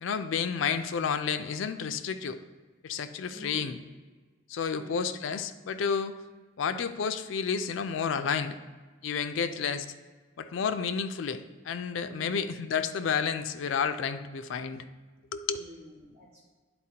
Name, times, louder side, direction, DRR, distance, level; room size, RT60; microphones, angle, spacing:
voice 1, 0.0-2.4 2.8-3.8 4.5-6.1 6.6-8.6 9.0-9.8 10.4-14.8 15.3-15.6, left 6 dB, 90° left, 10 dB, 0.4 m, -31 dB
voice 2, 3.3-3.7 4.7-5.1 9.3-9.6 12.1-12.4 15.5-16.5, equal, 30° right, -10 dB, 1.8 m, -48 dB
8.8 x 4.1 x 2.8 m, 1.3 s
head